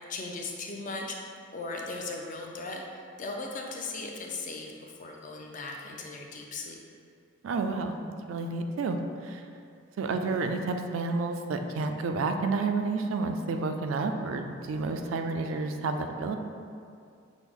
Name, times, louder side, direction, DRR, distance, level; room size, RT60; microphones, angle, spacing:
voice 1, 0.1-6.8, left 3 dB, 40° left, 0 dB, 0.4 m, -38 dB
voice 2, 7.4-7.9 8.3-9.0 9.2-9.4 10.0-16.4, right 3 dB, 75° right, 5 dB, 0.3 m, -30 dB
6.0 x 2.0 x 3.5 m, 2.3 s
head